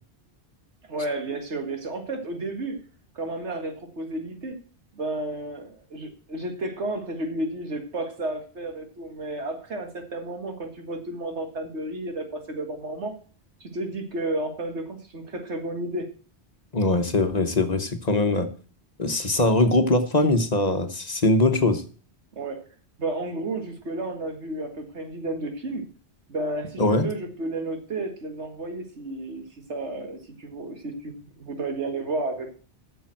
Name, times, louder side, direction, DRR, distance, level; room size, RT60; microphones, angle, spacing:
voice 1, 0.9-2.8 3.2-4.6 5.0-13.2 13.6-16.1 19.6-19.7 22.3-22.7 23.0-25.9 26.3-29.4 29.7-32.5, right 2 dB, 90° right, 6 dB, 2.1 m, -32 dB
voice 2, 16.7-18.5 19.0-21.8 26.8-27.0, left 2 dB, 40° left, 8 dB, 1.2 m, -21 dB
8.8 x 6.9 x 7.6 m, 0.39 s
omnidirectional pair, 1.1 m